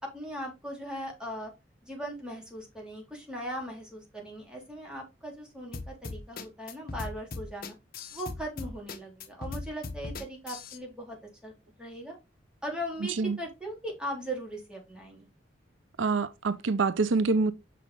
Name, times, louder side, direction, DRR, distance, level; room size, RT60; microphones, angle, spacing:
voice 1, 0.0-1.5 1.8-7.7 8.1-11.2 11.4-11.5 11.8-12.2 12.6-15.2, equal, 5° right, 3.3 m, -39 dB
sound 1, 5.7-10.8, left 3 dB, 50° left, 1.1 m, -38 dB
voice 2, 16.0-17.5, right 4 dB, 85° right, 0.5 m, -26 dB
6.4 x 5.9 x 3.6 m
head